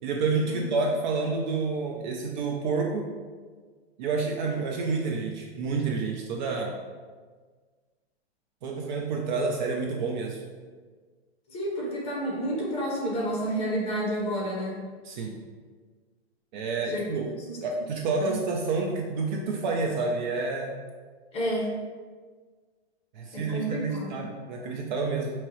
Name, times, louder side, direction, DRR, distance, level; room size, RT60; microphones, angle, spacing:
voice 1, 0.0-3.1 4.0-6.7 8.6-10.4 15.0-15.4 16.5-17.2 17.6-20.7 23.1-25.3, right 4 dB, 45° right, 1 dB, 0.5 m, -29 dB
voice 2, 11.5-14.8 16.9-17.0 17.5-17.9 18.2-18.4 21.3-21.7 23.3-24.2, equal, 20° left, -3 dB, 1.2 m, -30 dB
5.6 x 2.9 x 3.0 m, 1.5 s
hypercardioid pair, 140°, 33 cm